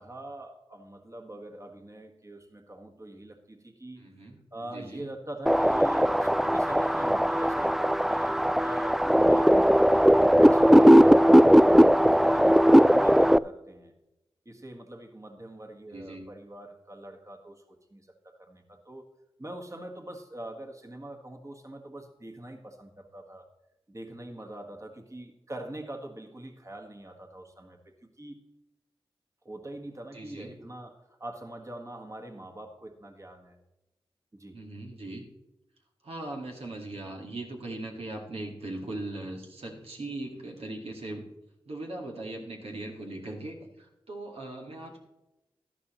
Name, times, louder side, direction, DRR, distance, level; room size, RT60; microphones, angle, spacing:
voice 1, 0.0-4.1 4.5-11.6 12.0-13.9 14.4-19.1 19.4-23.5 23.9-28.4 29.4-33.6 34.3-34.6, right 1 dB, 30° right, 3 dB, 1.6 m, -43 dB
voice 2, 4.0-5.1 15.9-16.3 30.1-30.6 34.5-35.3 36.0-41.2 41.7-45.0, right 2 dB, 80° right, 1 dB, 1.9 m, -39 dB
sound 1, 5.5-13.4, equal, 5° right, 0.3 m, -19 dB
12.0 x 11.0 x 3.1 m, 0.94 s
cardioid pair, 40°, 10 cm